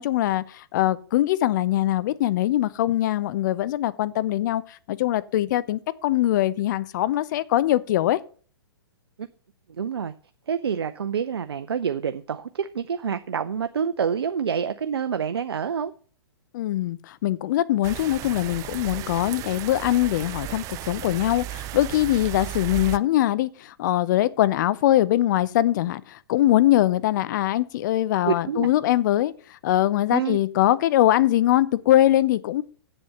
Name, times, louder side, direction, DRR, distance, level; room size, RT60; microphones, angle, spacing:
voice 1, 0.0-8.2 16.5-32.6, left 14 dB, 50° left, 0.7 m, -22 dB
voice 2, 9.8-10.1 10.5-15.9 28.2-28.7 30.1-30.4, right 7 dB, 75° right, 0.6 m, -27 dB
sound 1, 17.8-23.0, right 15 dB, 25° right, 0.4 m, -35 dB
7.7 x 7.6 x 6.6 m
figure-of-eight pair, 120°, 13 cm